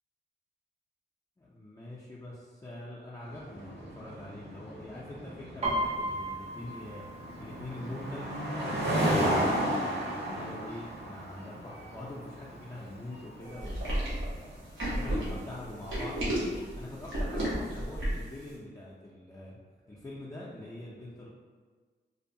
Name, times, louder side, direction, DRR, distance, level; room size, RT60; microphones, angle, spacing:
voice 1, 1.4-7.0 7.4-8.4 9.2-19.6 19.9-21.3, left 1 dB, 15° left, -7 dB, 0.4 m, -44 dB
sound 1, 3.3-16.8, equal, 60° right, 0.9 m, -34 dB
Piano, 5.6-9.3 9.6-10.0 10.4-11.0 11.6-11.7 11.9-13.0 13.3-13.4, right 1 dB, 35° right, 0.5 m, -36 dB
sound 2, 13.6-18.3, right 1 dB, 90° right, 0.9 m, -32 dB
2.6 x 2.1 x 2.6 m, 1.5 s
cardioid pair, 80°, 20 cm